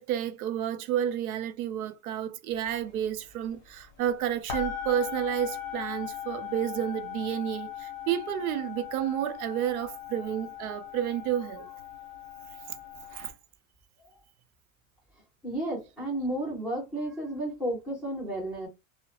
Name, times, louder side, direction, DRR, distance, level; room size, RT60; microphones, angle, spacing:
voice 1, 0.0-11.7 13.1-13.3, right 10 dB, 80° right, 0.6 m, -31 dB
sound 1, 2.6-2.8 3.0-4.1 4.5-13.3, left 9 dB, 30° left, 0.7 m, -39 dB
voice 2, 15.4-18.7, right 1 dB, ahead, 0.5 m, -32 dB
2.3 x 2.1 x 2.9 m
supercardioid pair, 180°, 42 cm